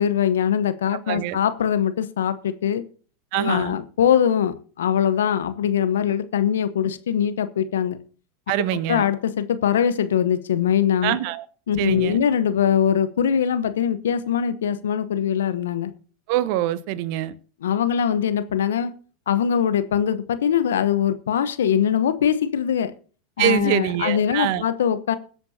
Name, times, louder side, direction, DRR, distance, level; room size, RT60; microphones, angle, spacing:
voice 1, 0.0-2.8 3.3-8.0 8.9-11.2 11.7-15.9 17.6-18.9 19.3-22.9 23.4-25.2, left 8 dB, 80° left, 0.9 m, -22 dB
voice 2, 1.1-1.4 3.3-3.8 8.5-9.0 11.0-11.4 11.8-12.2 16.3-17.3 23.4-24.6, right 13 dB, 60° right, 1.0 m, -24 dB
22.5 x 8.1 x 2.8 m
hypercardioid pair, 90°, 0 cm